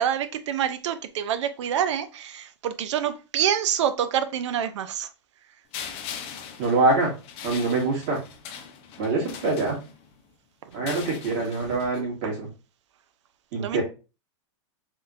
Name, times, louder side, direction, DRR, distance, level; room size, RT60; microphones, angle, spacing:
voice 1, 0.0-5.1 13.5-13.8, right 9 dB, 75° right, 0.5 m, -26 dB
sound 1, 5.7-10.2 10.7-12.0, left 8 dB, 40° left, 0.5 m, -40 dB
voice 2, 6.6-7.1 7.4-8.2 9.0-9.8 10.7-12.5 13.5-13.8, right 3 dB, 50° right, 1.8 m, -24 dB
3.5 x 2.6 x 2.4 m
hypercardioid pair, 130°, 15 cm